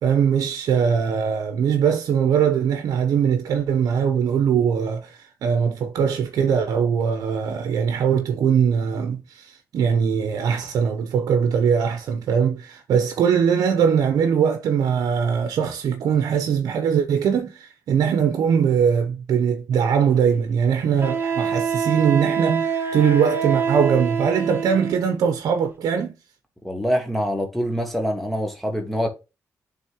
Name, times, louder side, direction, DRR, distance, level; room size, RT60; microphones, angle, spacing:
voice 1, 0.0-26.1, right 7 dB, 85° right, 0.7 m, -21 dB
Wind instrument woodwind instrument, 19.7-19.8 21.0-25.1, right 6 dB, 35° right, 2.0 m, -25 dB
voice 2, 26.6-29.1, equal, ahead, 1.3 m, -25 dB
8.9 x 3.7 x 3.0 m
cardioid pair, 60°, 6 cm